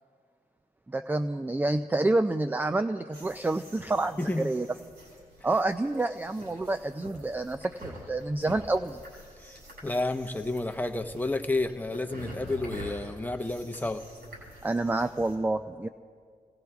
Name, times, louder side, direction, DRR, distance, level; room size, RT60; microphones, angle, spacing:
voice 1, 0.9-4.7 5.4-9.0 14.6-15.9, right 2 dB, 10° right, 9 dB, 0.4 m, -28 dB
sound 1, 3.1-15.4, equal, 85° right, 4.9 m, -47 dB
voice 2, 4.2-4.5 9.4-14.0, left 2 dB, 10° left, 6 dB, 0.8 m, -31 dB
30.0 x 17.5 x 2.3 m, 2.1 s
cardioid pair, 70°, 16 cm